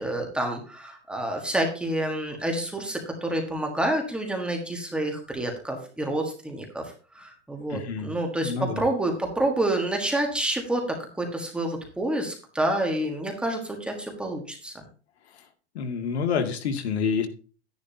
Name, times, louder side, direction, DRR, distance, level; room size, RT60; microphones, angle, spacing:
voice 1, 0.0-14.7, right 1 dB, 5° right, 2 dB, 1.5 m, -28 dB
voice 2, 7.7-8.1 8.4-8.8 15.7-17.3, left 6 dB, 75° left, 7 dB, 2.1 m, -27 dB
12.0 x 10.5 x 2.8 m, 0.37 s
supercardioid pair, 175°, 33 cm